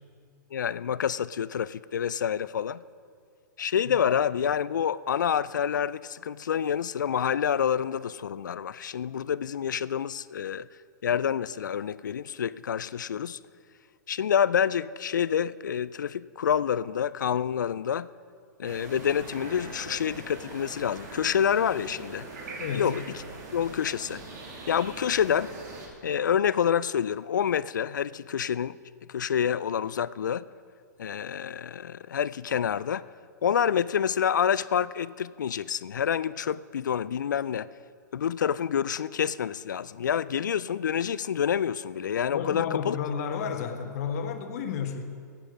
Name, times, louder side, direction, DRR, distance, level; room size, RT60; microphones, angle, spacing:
voice 1, 0.5-2.8 3.6-10.7 11.0-13.4 14.1-18.1 18.6-22.3 22.7-23.0 23.5-24.2 24.7-25.5 26.0-28.8 29.1-30.4 31.0-33.0 33.4-37.7 38.1-43.0, left 8 dB, 80° left, 18 dB, 0.4 m, -27 dB
sound 1, 18.6-25.9, right 3 dB, 65° right, 2.8 m, -42 dB
voice 2, 22.6-23.0 42.3-45.0, left 7 dB, 60° left, 6 dB, 1.4 m, -32 dB
13.5 x 8.9 x 6.0 m, 2.2 s
hypercardioid pair, 110°, 10 cm